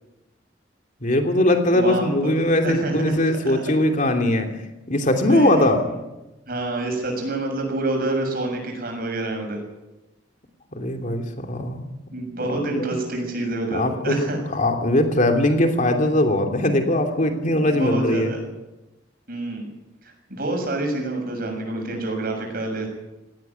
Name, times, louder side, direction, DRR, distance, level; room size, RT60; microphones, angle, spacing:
voice 1, 1.0-4.5 4.9-5.8 10.7-11.9 12.8-12.9 13.7-18.3, left 1 dB, 45° left, 4 dB, 3.0 m, -20 dB
voice 2, 1.7-2.4 2.6-3.2 5.2-5.8 6.5-9.6 12.1-14.4 17.6-18.4 19.3-19.7 20.0-22.9, right 2 dB, 55° right, 3 dB, 7.1 m, -27 dB
18.5 x 16.0 x 9.5 m, 1.0 s
head